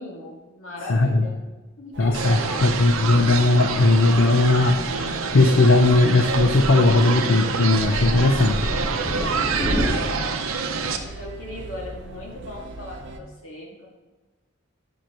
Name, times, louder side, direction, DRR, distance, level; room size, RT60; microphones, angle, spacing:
voice 1, 0.0-1.4 1.8-2.6 9.1-10.4 11.0-13.9, left 1 dB, 85° left, -2 dB, 2.3 m, -37 dB
voice 2, 0.9-1.3 2.0-8.7, left 2 dB, 70° left, 4 dB, 0.6 m, -18 dB
Thunder, 1.9-9.9, equal, 20° left, 1.5 m, -32 dB
sound 1, 1.9-13.2, right 1 dB, 60° right, 0.8 m, -40 dB
sound 2, 2.1-11.0, right 5 dB, 90° right, 0.8 m, -27 dB
11.5 x 6.1 x 3.1 m, 1.2 s
head